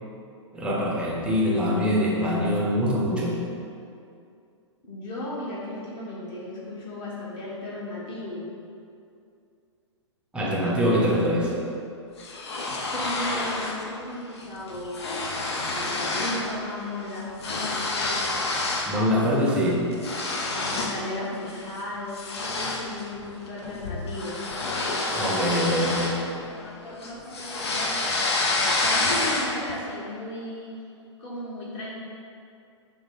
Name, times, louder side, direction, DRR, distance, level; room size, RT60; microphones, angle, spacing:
voice 1, 0.5-3.4 10.3-11.5 18.9-19.8 25.1-26.2, equal, 5° right, -4 dB, 0.7 m, -24 dB
voice 2, 4.9-8.5 12.9-15.1 15.4-18.3 19.2-19.6 20.5-24.3 25.5-30.7 31.2-32.0, left 1 dB, 30° left, -6 dB, 1.3 m, -36 dB
sound 1, 12.2-13.8 14.2-14.4 14.7-16.5 16.8-19.0 19.4-21.0 21.5-21.7 22.1-26.7 27.0-29.7, left 2 dB, 60° left, 0.7 m, -28 dB
6.0 x 2.2 x 4.0 m, 2.5 s
figure-of-eight pair, 115°, 16 cm